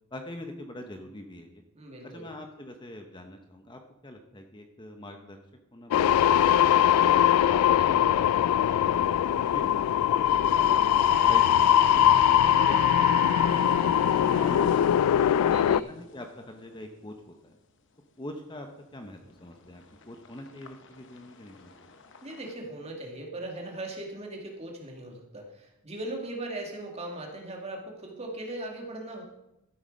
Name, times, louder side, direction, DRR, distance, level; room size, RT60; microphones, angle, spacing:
voice 1, 0.1-1.6 2.0-5.4 5.7-6.6 7.4-10.8 11.2-15.2 15.7-17.6 18.2-18.7 18.9-21.9, left 1 dB, 20° left, 5 dB, 0.8 m, -44 dB
voice 2, 1.8-2.3 7.5-8.1 10.5-10.9 15.4-15.8 22.2-29.2, right 1 dB, 30° right, 1 dB, 1.9 m, -39 dB
sound 1, 5.9-15.8, left 10 dB, 85° left, 0.3 m, -21 dB
sound 2, 6.2-22.5, left 3 dB, 55° left, 0.9 m, -52 dB
Wind instrument woodwind instrument, 11.1-15.1, right 8 dB, 85° right, 0.6 m, -40 dB
13.0 x 8.0 x 5.2 m, 0.91 s
head